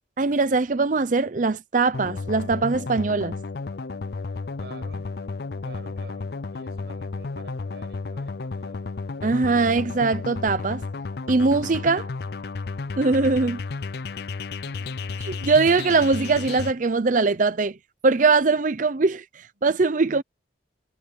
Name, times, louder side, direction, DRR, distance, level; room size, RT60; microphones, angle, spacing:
voice 1, 0.2-3.4 9.2-10.8 11.3-12.1 13.0-13.6 15.4-17.8 18.0-19.2 19.6-20.2, right 3 dB, 45° right, 0.6 m, -21 dB
sound 1, 1.9-16.7, left 4 dB, 60° left, 0.5 m, -33 dB
voice 2, 4.6-5.1 5.6-8.8 14.6-15.2, right 2 dB, 65° right, 7.3 m, -48 dB
head